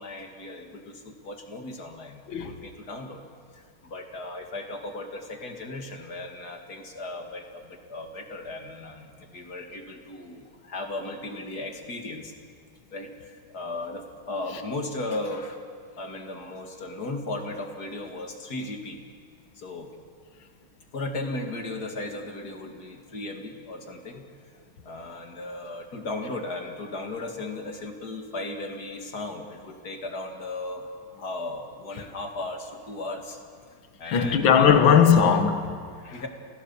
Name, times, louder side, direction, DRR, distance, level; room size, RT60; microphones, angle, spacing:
voice 1, 0.0-3.2 3.5-12.3 12.9-15.6 16.0-19.0 19.6-19.9 20.9-33.4 34.0-34.8 36.1-36.3, left 2 dB, 45° left, 2.5 m, -36 dB
voice 2, 34.1-36.1, left 7 dB, 65° left, 2.2 m, -19 dB
28.5 x 16.5 x 7.1 m
omnidirectional pair, 2.3 m